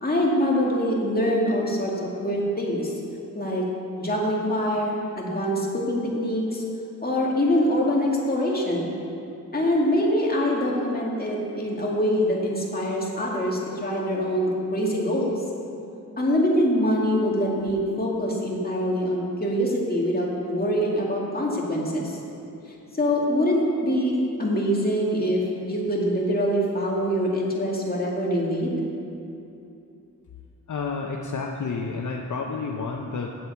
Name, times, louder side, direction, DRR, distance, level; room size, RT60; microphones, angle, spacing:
voice 1, 0.0-2.9 3.3-3.6 4.0-6.6 7.0-8.9 9.5-15.4 16.2-22.2 23.0-28.8, equal, 30° left, -3 dB, 2.2 m, -24 dB
voice 2, 30.7-33.3, left 4 dB, 65° left, 1 dB, 0.7 m, -30 dB
8.7 x 7.7 x 6.9 m, 2.8 s
wide cardioid pair, 80°, 33 cm